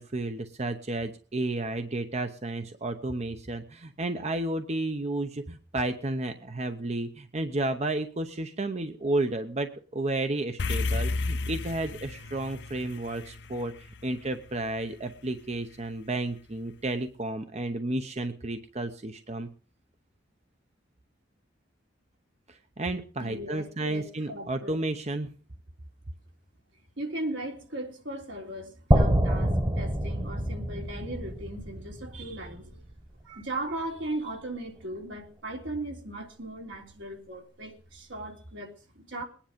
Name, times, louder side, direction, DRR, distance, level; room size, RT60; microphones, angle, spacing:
voice 1, 0.0-13.7 14.0-19.5 22.5-25.3, right 2 dB, 35° right, 0.9 m, -32 dB
sound 1, 10.6-15.1, left 3 dB, 65° left, 0.7 m, -32 dB
voice 2, 23.2-24.8 27.0-32.9 33.2-39.2, right 1 dB, 80° right, 3.6 m, -37 dB
sound 2, 28.9-32.9, right 1 dB, 20° right, 1.4 m, -26 dB
20.5 x 10.0 x 5.2 m
head